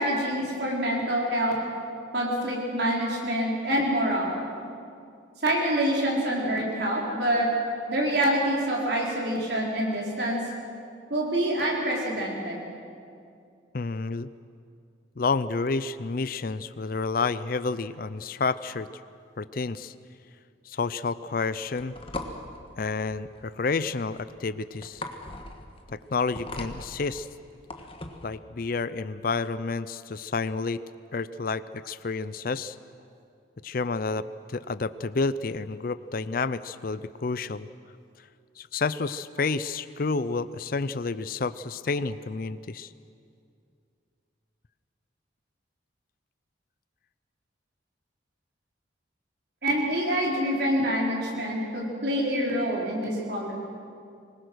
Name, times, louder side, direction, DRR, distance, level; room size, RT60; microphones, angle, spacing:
voice 1, 0.0-1.6 2.1-4.4 5.4-7.5 7.9-10.4 11.1-12.6 49.6-53.5, equal, 55° right, -2 dB, 4.6 m, -26 dB
voice 2, 13.7-14.3 15.2-18.9 19.4-19.9 20.7-21.9 22.8-25.0 25.9-27.3 28.2-30.8 31.1-32.8 33.6-34.2 34.5-37.7 38.6-42.9, left 4 dB, 50° left, 15 dB, 0.5 m, -30 dB
sound 1, 21.8-28.3, left 2 dB, 30° left, 1.4 m, -40 dB
25.0 x 20.5 x 6.3 m, 2.4 s
head